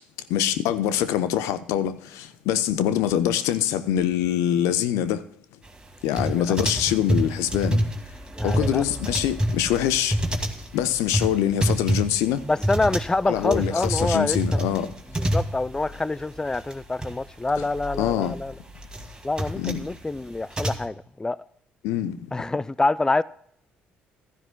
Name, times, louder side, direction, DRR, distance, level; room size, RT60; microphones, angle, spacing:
voice 1, 0.3-5.2 6.0-7.8 8.4-10.2 10.7-12.4 13.3-14.9 18.0-18.3 19.6-19.8 21.8-22.2, left 10 dB, 70° left, 0.7 m, -24 dB
voice 2, 6.2-6.5 8.4-8.8 12.5-14.6 15.2-18.5 19.2-21.4 22.3-23.2, left 2 dB, 15° left, 0.4 m, -26 dB
sound 1, 6.2-16.0 16.2-16.3 16.5-17.1 17.5-20.8, equal, 15° right, 2.2 m, -26 dB
15.0 x 13.0 x 2.2 m
hypercardioid pair, 50°, 5 cm